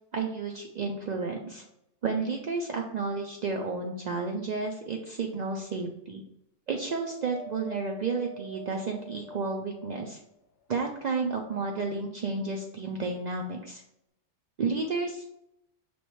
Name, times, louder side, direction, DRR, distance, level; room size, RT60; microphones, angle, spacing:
voice 1, 0.1-1.6 2.0-6.2 6.7-10.2 10.7-13.8 14.6-15.3, right 4 dB, 85° right, 1 dB, 0.3 m, -31 dB
Wind, 6.8-10.4 11.0-12.0 12.8-12.9, equal, 85° left, 1.0 m, -47 dB
5.7 x 3.1 x 3.0 m, 0.79 s
omnidirectional pair, 1.3 m